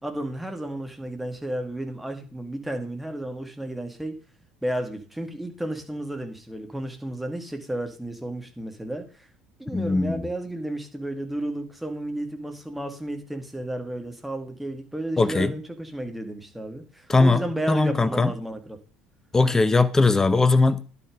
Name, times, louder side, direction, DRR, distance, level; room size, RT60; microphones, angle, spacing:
voice 1, 0.0-4.1 4.6-9.3 9.6-18.8, right 1 dB, 5° right, 2.3 m, -32 dB
voice 2, 9.7-10.3 15.2-15.5 17.1-18.3 19.3-20.8, left 3 dB, 15° left, 0.8 m, -20 dB
10.5 x 6.9 x 5.2 m
figure-of-eight pair, 60°, 3 cm